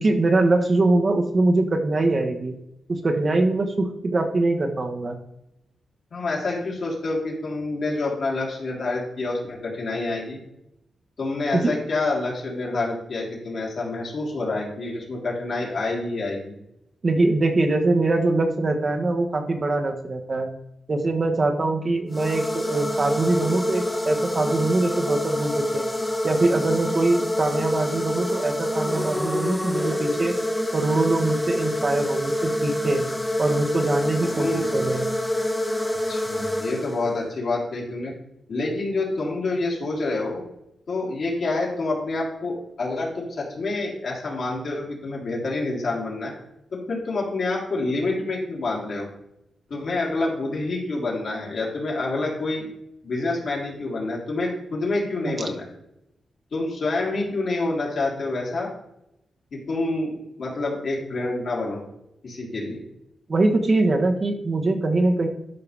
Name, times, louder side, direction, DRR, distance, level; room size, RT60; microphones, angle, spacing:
voice 1, 0.0-2.5 2.9-5.2 11.5-11.8 17.0-20.5 20.9-25.9 26.2-30.4 30.7-33.0 33.4-34.5 34.7-35.1 55.3-55.4 63.3-65.3, right 2 dB, 35° right, 3 dB, 1.1 m, -23 dB
voice 2, 6.1-10.4 11.2-16.5 34.2-34.7 36.1-38.1 38.5-40.4 40.9-46.3 46.7-49.1 49.7-52.7 53.0-55.6 56.5-58.7 59.5-60.1 60.4-61.8 62.2-62.8, left 2 dB, 60° left, -4 dB, 3.4 m, -27 dB
sound 1, 22.1-37.3, left 1 dB, 10° left, 0.9 m, -26 dB
12.0 x 5.6 x 3.4 m, 0.83 s
wide cardioid pair, 115°, 0 cm